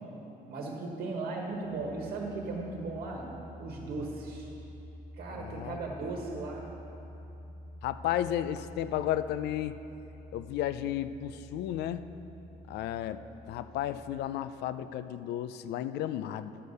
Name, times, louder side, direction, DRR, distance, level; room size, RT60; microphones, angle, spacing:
voice 1, 0.5-3.3 3.6-4.5 5.2-6.7, right 3 dB, 60° right, -1 dB, 1.3 m, -37 dB
sound 1, 1.5-14.0, equal, ahead, 0.9 m, -49 dB
voice 2, 5.3-5.8 7.8-9.7 10.3-12.0 12.7-16.6, left 11 dB, 80° left, 13 dB, 0.4 m, -33 dB
11.0 x 6.6 x 5.4 m, 3.0 s
cardioid pair, 110°, 17 cm